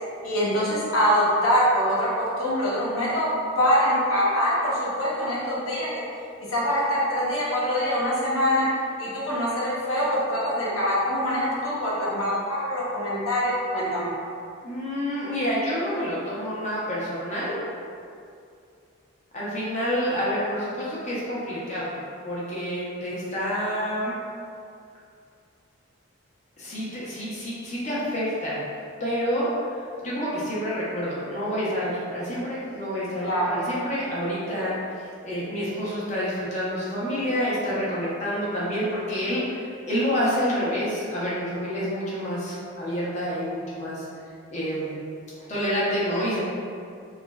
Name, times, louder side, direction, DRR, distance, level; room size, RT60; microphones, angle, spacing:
voice 1, 0.2-3.3 3.6-5.9 6.5-14.1 33.2-33.6, equal, 90° left, -7 dB, 0.8 m, -24 dB
voice 2, 14.6-17.6 19.3-24.2 26.6-28.7 29.0-44.0 44.5-45.0 45.4-46.4, equal, 35° left, -8 dB, 0.6 m, -28 dB
2.9 x 2.4 x 2.2 m, 2.4 s
head